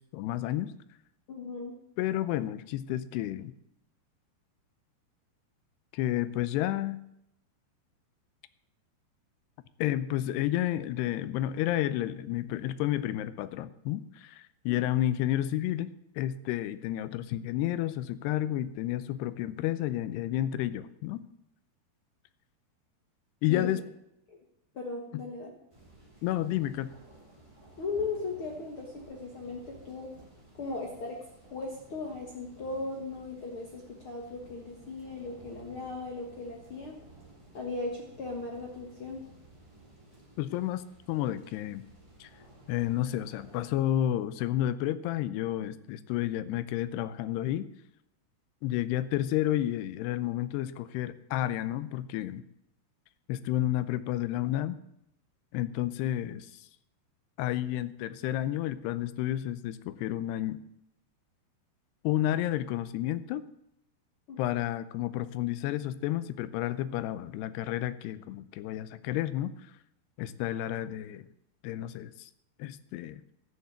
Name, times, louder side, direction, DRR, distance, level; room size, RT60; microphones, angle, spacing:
voice 1, 0.1-0.7 2.0-3.5 5.9-7.0 9.8-21.3 23.4-23.8 25.1-25.2 26.2-26.9 40.4-41.8 42.2-42.3 42.7-47.7 48.6-52.4 53.3-54.8 55.5-56.6 57.4-60.6 62.0-63.4 64.4-69.5 70.2-71.3 71.6-72.3 72.6-73.2, left 13 dB, 85° left, 15 dB, 2.7 m, -31 dB
voice 2, 1.3-1.8 14.7-14.8 23.5-23.7 24.3-24.4 24.7-25.5 27.8-30.1 30.6-31.2 31.5-37.0 37.5-39.2 64.3-64.5, left 3 dB, 65° left, 0 dB, 1.3 m, -37 dB
sound 1, 25.7-43.7, right 1 dB, 10° right, 2.3 m, -55 dB
12.5 x 7.0 x 8.0 m, 0.79 s
omnidirectional pair, 4.8 m